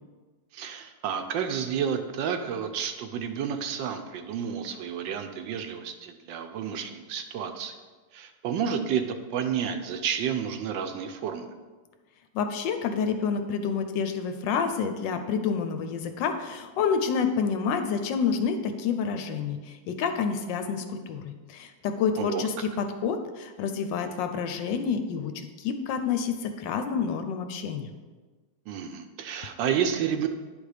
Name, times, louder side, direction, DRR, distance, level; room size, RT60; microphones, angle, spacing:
voice 1, 0.5-7.7 8.1-11.5 22.2-22.7 28.7-30.3, right 8 dB, 75° right, 7 dB, 1.2 m, -30 dB
voice 2, 12.3-27.9, left 6 dB, 75° left, 7 dB, 1.2 m, -28 dB
9.5 x 3.5 x 4.9 m, 1.3 s
omnidirectional pair, 2.2 m